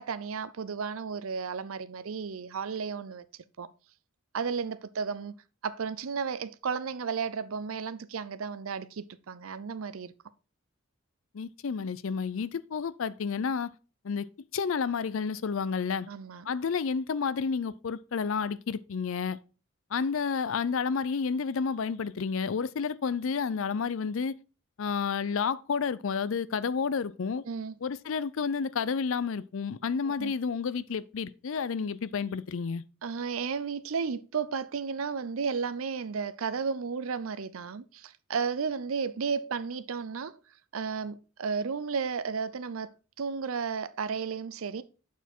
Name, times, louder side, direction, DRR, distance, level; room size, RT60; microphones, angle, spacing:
voice 1, 0.0-3.2 3.6-3.7 4.3-5.4 5.6-10.1 16.1-16.5 27.5-27.8 30.1-30.3 33.0-40.4 40.7-42.9 43.2-44.8, right 5 dB, 75° right, 0.6 m, -33 dB
voice 2, 11.3-13.7 14.0-14.3 14.5-16.1 16.5-19.4 19.9-24.3 24.8-27.4 27.8-32.8, left 5 dB, 65° left, 0.5 m, -30 dB
8.0 x 4.7 x 4.4 m
head